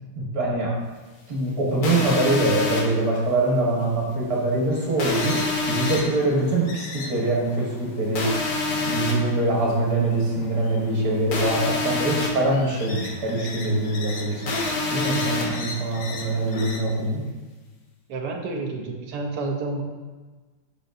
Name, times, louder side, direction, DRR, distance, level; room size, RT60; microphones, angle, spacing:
voice 1, 0.2-0.7 1.3-5.4 5.7-8.3 8.7-14.4 14.9-17.2, right 2 dB, 55° right, -3 dB, 1.8 m, -24 dB
sound 1, 1.8-2.8 5.0-6.0 8.1-9.1 11.3-12.3 14.5-15.4, left 3 dB, 80° left, 1.7 m, -26 dB
sound 2, 4.7-16.8, left 3 dB, 60° left, 1.1 m, -39 dB
voice 2, 18.1-19.8, right 3 dB, 75° right, 2 dB, 1.3 m, -29 dB
7.9 x 4.9 x 2.6 m, 1.3 s
omnidirectional pair, 1.9 m